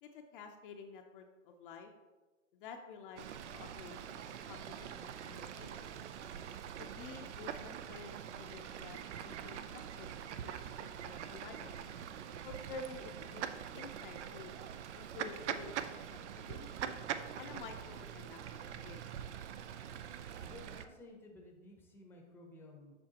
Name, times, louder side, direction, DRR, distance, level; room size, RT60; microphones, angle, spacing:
voice 1, 0.0-1.9 2.5-6.0 6.8-10.1 10.4-11.7 12.4-14.5 15.0-16.9 17.4-19.1, left 4 dB, 45° left, 4 dB, 0.7 m, -51 dB
Fowl / Bird, 3.2-20.8, right 9 dB, 65° right, 0.6 m, -44 dB
voice 2, 20.4-23.0, left 2 dB, 5° left, 1 dB, 0.8 m, -55 dB
7.6 x 5.6 x 2.9 m, 1.2 s
hypercardioid pair, 125°, 38 cm